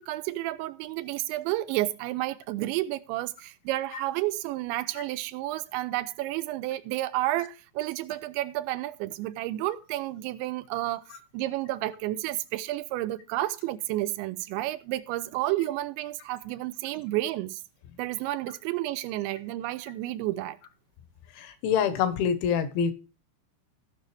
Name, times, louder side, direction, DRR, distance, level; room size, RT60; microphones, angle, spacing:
voice 1, 0.0-11.0 11.3-17.6 18.0-20.6, right 16 dB, 85° right, 2.8 m, -31 dB
voice 2, 21.3-22.9, left 7 dB, 80° left, 3.5 m, -26 dB
18.0 x 6.1 x 3.3 m
omnidirectional pair, 5.4 m